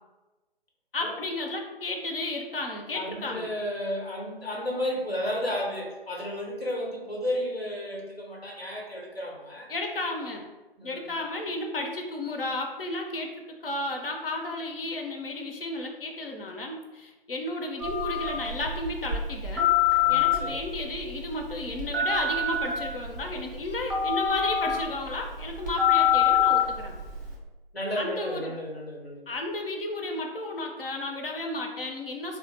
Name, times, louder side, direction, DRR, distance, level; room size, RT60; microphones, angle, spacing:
voice 1, 0.9-3.5 9.7-10.4 10.8-19.7 20.1-26.9 28.0-28.5 29.3-32.4, left 2 dB, 65° left, 2 dB, 0.7 m, -33 dB
voice 2, 2.9-9.7 10.8-11.2 20.0-20.6 27.7-29.3, left 1 dB, 90° left, -1 dB, 1.0 m, -33 dB
Telephone, 17.8-27.4, left 7 dB, 20° right, 0.4 m, -26 dB
3.5 x 2.0 x 3.2 m, 1.1 s
figure-of-eight pair, 140°, 30 cm